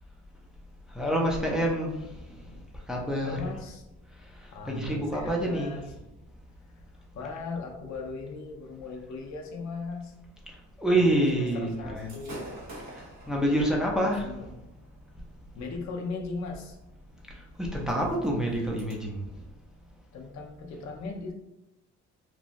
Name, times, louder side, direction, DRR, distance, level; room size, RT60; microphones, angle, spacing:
voice 1, 0.9-3.4 4.1-5.7 10.5-12.1 12.9-14.4 17.3-19.5, right 1 dB, ahead, -2 dB, 0.6 m, -28 dB
voice 2, 3.2-3.8 4.5-5.8 6.7-10.1 10.9-12.5 13.3-13.9 14.2-14.6 15.5-16.8 20.1-21.3, left 4 dB, 65° left, 1 dB, 0.6 m, -38 dB
Gunshot gunfire / Fireworks, 11.9-18.9, right 1 dB, 65° right, 1.2 m, -49 dB
3.1 x 2.3 x 2.5 m, 0.96 s
cardioid pair, 90°, 30 cm